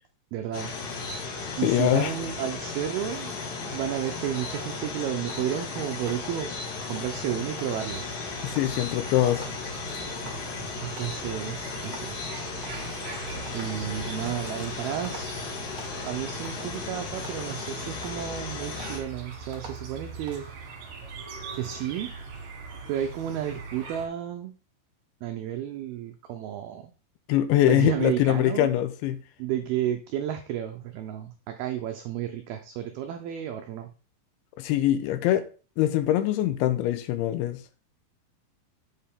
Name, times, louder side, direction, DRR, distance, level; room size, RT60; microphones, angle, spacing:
voice 1, 0.3-0.7 1.6-3.3 3.6-6.5 6.9-8.0 10.8-12.2 13.5-15.5 16.0-20.5 21.5-22.1 22.9-24.5 25.2-26.9 27.6-28.7 29.4-33.9, right 10 dB, 90° right, 2.1 m, -32 dB
sound 1, 0.5-19.0, left 4 dB, 60° left, 3.1 m, -36 dB
voice 2, 1.6-2.1 8.4-9.5 27.3-29.2 34.6-35.4 35.8-37.6, left 13 dB, 85° left, 3.0 m, -23 dB
sound 2, 4.9-5.0 5.3-5.7 6.0-6.4 6.8-7.2 7.6-8.0 8.4-8.8 9.3-9.7 10.0-10.7 11.0-11.4 11.8-12.2 12.6-13.1 13.5-13.9 14.3-14.7 15.0-15.4 15.8-16.2 16.4-16.8 17.2-17.6 18.0-18.4 18.8-19.1 19.5-19.9 20.3-20.5, right 4 dB, 40° right, 2.3 m, -47 dB
sound 3, 7.7-24.1, right 4 dB, 60° right, 3.2 m, -42 dB
7.9 x 6.7 x 3.6 m
omnidirectional pair, 5.3 m